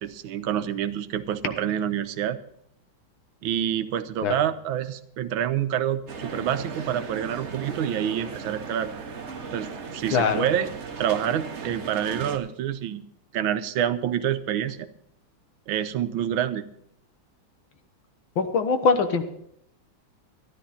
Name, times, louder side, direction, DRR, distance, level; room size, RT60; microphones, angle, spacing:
voice 1, 0.0-2.4 3.4-8.9 9.5-10.7 11.0-13.0 13.3-14.9 15.7-16.6, right 10 dB, 80° right, 11 dB, 1.5 m, -27 dB
sound 1, 6.1-12.4, right 4 dB, 40° right, 1.2 m, -37 dB
voice 2, 10.1-10.4 18.4-19.2, left 5 dB, 75° left, 7 dB, 1.9 m, -22 dB
13.0 x 12.0 x 4.2 m, 0.71 s
omnidirectional pair, 2.2 m